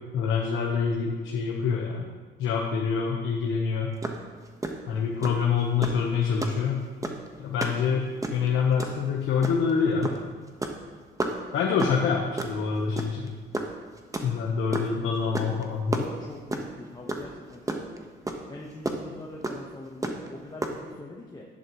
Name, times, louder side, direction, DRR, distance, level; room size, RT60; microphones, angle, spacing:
voice 1, 0.1-2.0 2.4-3.9 4.9-6.8 7.4-10.1 11.5-13.3 14.2-16.0, left 6 dB, 85° left, -1 dB, 1.1 m, -26 dB
sound 1, 4.0-4.2 4.5-4.7 5.2-5.4 5.8-6.0 6.4-6.6 7.0-7.3 7.6-7.8 8.1-8.5 8.8-9.0 9.4-9.7 10.0-10.2 10.5-10.8 11.2-11.3 11.8-12.0 12.4-12.6 13.0-13.3 13.5-14.9 15.3-15.6 15.9-16.7 17.1-17.3 17.5-18.0 18.3-18.4 18.9-19.0 19.4-19.5 20.0-20.3 20.6-20.8, right 2 dB, 15° right, 1.2 m, -30 dB
voice 2, 15.9-18.1 18.5-21.6, left 2 dB, 20° left, -2 dB, 1.2 m, -43 dB
11.5 x 11.0 x 3.1 m, 1.4 s
cardioid pair, 90°, 20 cm